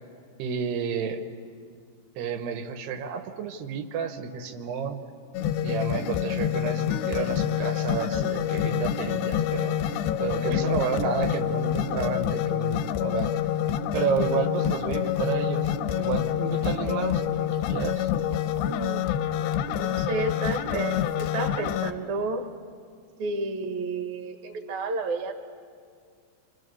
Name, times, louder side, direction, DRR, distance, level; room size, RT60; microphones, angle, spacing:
voice 1, 0.4-1.2 2.2-5.0 5.6-9.8 10.2-13.3 13.9-18.1, right 6 dB, 85° right, 7 dB, 3.3 m, -31 dB
sound 1, 5.3-21.9, left 10 dB, 90° left, 3.0 m, -27 dB
voice 2, 18.6-19.1 19.8-22.5 23.2-25.3, right 3 dB, 55° right, 6 dB, 2.7 m, -31 dB
27.5 x 27.0 x 7.0 m, 2.1 s
omnidirectional pair, 4.6 m